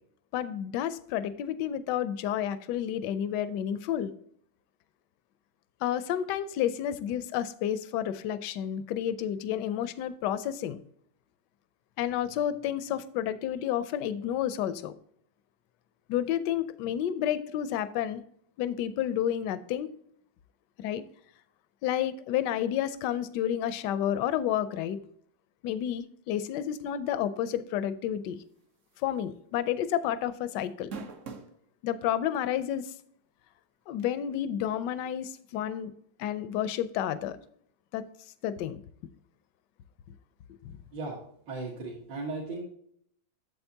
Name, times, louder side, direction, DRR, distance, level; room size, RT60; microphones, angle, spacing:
voice 1, 0.3-4.1 5.8-10.8 12.0-14.9 16.1-18.2 18.6-19.9 20.8-21.0 21.8-25.0 25.6-28.4 29.0-30.9 31.8-32.9 33.9-35.9 36.2-37.4 37.9-38.0 38.4-38.8 40.7-40.8, left 10 dB, 75° left, 14 dB, 1.1 m, -30 dB
sound 1, 28.9-29.2 29.5-29.6 30.6-31.6 32.3-32.4 34.0-34.1, right 4 dB, 55° right, 0.9 m, -40 dB
voice 2, 41.5-42.6, right 3 dB, 70° right, -5 dB, 2.2 m, -36 dB
7.9 x 7.5 x 2.7 m, 0.66 s
omnidirectional pair, 2.1 m